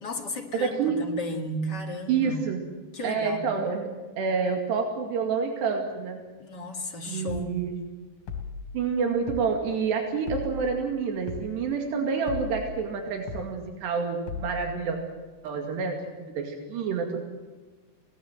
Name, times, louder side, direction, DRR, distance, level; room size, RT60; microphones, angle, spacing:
voice 1, 0.0-2.5 2.9-3.5 6.4-7.6, left 1 dB, 35° left, 2 dB, 2.1 m, -34 dB
voice 2, 0.5-1.0 2.1-2.6 3.0-6.2 7.1-7.7 8.7-15.0 15.4-17.2, right 5 dB, 85° right, 3 dB, 4.4 m, -28 dB
sound 1, 7.3-7.5 8.3-8.7 9.3-9.5 10.3-10.7 11.3-11.5 12.3-12.7 13.3-13.5 14.3-14.7, left 5 dB, 55° left, 4.3 m, -36 dB
25.0 x 18.0 x 8.0 m, 1.3 s
omnidirectional pair, 4.7 m